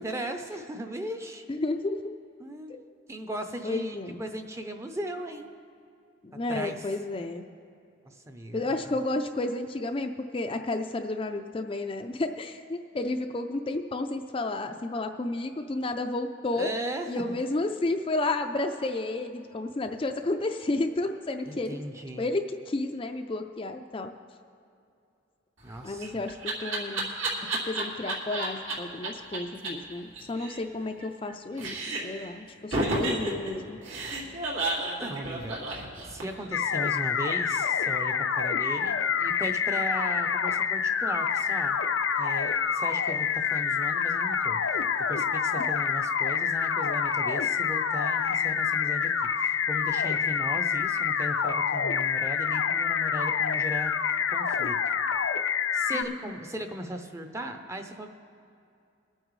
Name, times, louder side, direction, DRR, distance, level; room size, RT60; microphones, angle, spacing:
voice 1, 0.0-1.4 2.4-2.8 3.1-5.5 6.5-6.9 8.0-8.8 16.5-17.2 21.5-22.3 25.6-26.1 34.8-35.6 36.0-41.8 42.2-44.6 45.1-49.1 49.4-53.9 54.3-54.8 55.7-58.1, right 1 dB, 15° right, 6 dB, 0.6 m, -37 dB
voice 2, 1.5-2.0 2.7-2.8 3.6-4.3 6.2-7.4 8.5-16.7 17.1-21.8 22.2-24.1 25.8-27.1 27.6-31.8 32.0-33.8 55.9-56.3, left 2 dB, 25° left, 5 dB, 0.4 m, -31 dB
Laughter, 25.6-28.7 29.0-29.1 29.3-29.4 29.6-29.7 30.0-31.3 31.6-32.2 32.7-36.5, right 2 dB, 80° right, 2.4 m, -31 dB
sound 1, 36.5-56.0, left 7 dB, 85° left, 0.6 m, -27 dB
22.5 x 8.9 x 3.2 m, 2.5 s
head